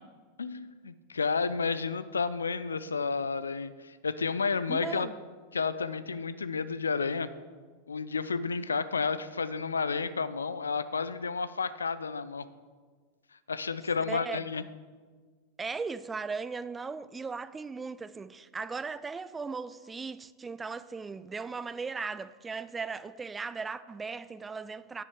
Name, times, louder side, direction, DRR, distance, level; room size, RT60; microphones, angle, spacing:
voice 1, 0.4-5.1 5.5-7.3 7.9-12.5 13.5-14.6, left 5 dB, 75° left, 0.4 m, -31 dB
voice 2, 4.7-5.2 14.1-14.6 15.6-25.0, right 4 dB, 15° right, 0.3 m, -37 dB
9.8 x 6.7 x 4.8 m
figure-of-eight pair, 90°, 0 cm